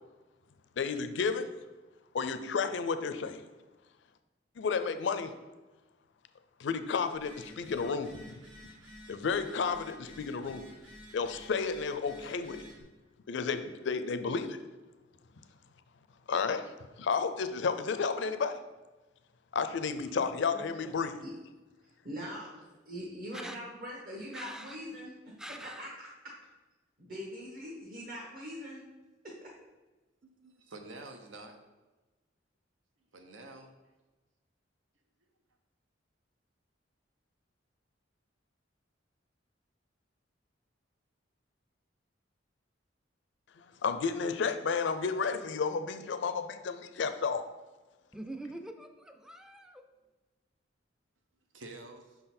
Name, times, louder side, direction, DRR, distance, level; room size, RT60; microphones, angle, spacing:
voice 1, 0.8-1.5 2.1-3.4 4.6-5.3 6.6-8.3 9.1-10.6 11.1-12.6 13.3-14.6 16.3-16.7 17.0-18.6 19.5-21.1 43.6-47.4, left 5 dB, 65° left, 9 dB, 0.4 m, -32 dB
Telephone, 7.1-12.8, equal, 75° right, 1.7 m, -52 dB
voice 2, 20.0-21.0 23.3-23.6 24.3-24.8 25.4-25.9 48.1-49.9, right 1 dB, 5° right, 6 dB, 0.3 m, -45 dB
voice 3, 22.0-22.5 22.8-25.1 25.8-26.1 27.0-28.9 29.2-29.5, equal, 50° right, -4 dB, 1.1 m, -42 dB
voice 4, 30.2-31.6 33.1-33.7 51.5-52.2, right 2 dB, 90° right, 5 dB, 0.8 m, -48 dB
5.7 x 3.9 x 4.3 m, 1.2 s
head